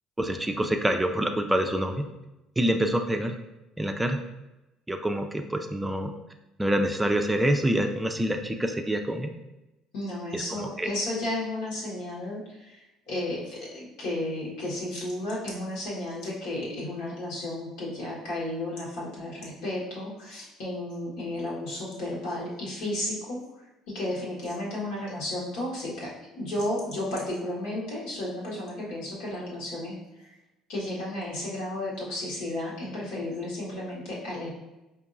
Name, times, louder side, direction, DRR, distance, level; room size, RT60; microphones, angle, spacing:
voice 1, 0.2-2.1 2.6-3.4 3.8-4.2 4.9-6.1 6.6-9.3 10.3-10.9, right 1 dB, 15° right, 5 dB, 0.4 m, -26 dB
voice 2, 9.9-12.8 13.1-23.4 23.9-30.0 30.2-30.3 30.7-34.5, left 1 dB, 80° left, -5 dB, 1.3 m, -33 dB
4.5 x 2.6 x 2.6 m, 0.99 s
supercardioid pair, 75°, 0 cm